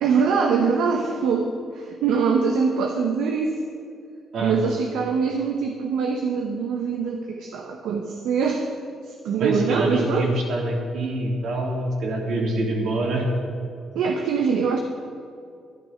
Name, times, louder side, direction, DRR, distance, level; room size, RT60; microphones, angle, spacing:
voice 1, 0.0-3.6 4.4-8.7 9.0-10.3 13.9-14.8, right 5 dB, 85° right, 3 dB, 1.0 m, -23 dB
voice 2, 4.3-4.7 9.4-13.3, right 2 dB, 65° right, -1 dB, 3.0 m, -25 dB
11.5 x 10.5 x 5.9 m, 2.3 s
cardioid pair, 90°, 0 cm